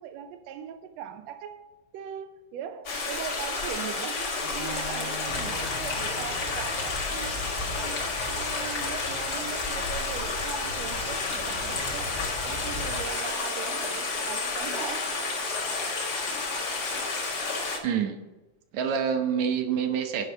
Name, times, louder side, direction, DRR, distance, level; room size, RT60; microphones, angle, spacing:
voice 1, 0.0-1.7 1.9-7.4 7.7-12.2 12.4-15.2, right 8 dB, 90° right, 1.5 m, -40 dB
Stream, 2.8-17.8, left 3 dB, 45° left, 1.3 m, -31 dB
Bowed string instrument, 4.4-7.3, equal, 50° right, 4.4 m, -43 dB
sound 1, 5.2-13.0, left 1 dB, 15° right, 1.3 m, -40 dB
voice 2, 17.8-18.2 18.7-20.3, right 7 dB, 65° right, 2.1 m, -27 dB
10.5 x 5.3 x 6.4 m
omnidirectional pair, 4.0 m